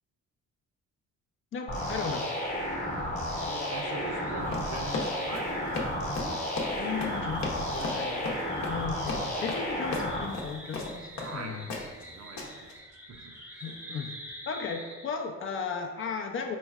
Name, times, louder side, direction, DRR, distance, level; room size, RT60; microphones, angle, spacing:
voice 1, 1.5-2.3 6.7-8.4 8.6-11.7 13.6-14.1 14.5-16.6, left 5 dB, 45° left, 3 dB, 0.5 m, -36 dB
sound 1, 1.7-10.2, left 1 dB, 25° left, 1.0 m, -32 dB
voice 2, 3.3-6.9 11.2-12.7 13.1-13.6, right 3 dB, 60° right, 3 dB, 0.6 m, -43 dB
sound 2, 3.4-15.3, equal, 5° right, 0.5 m, -48 dB
Run, 4.4-11.3 11.7-12.0 12.4-12.7, left 3 dB, 65° left, 0.8 m, -36 dB
4.3 x 3.0 x 2.4 m, 1.3 s
cardioid pair, 90°, 30 cm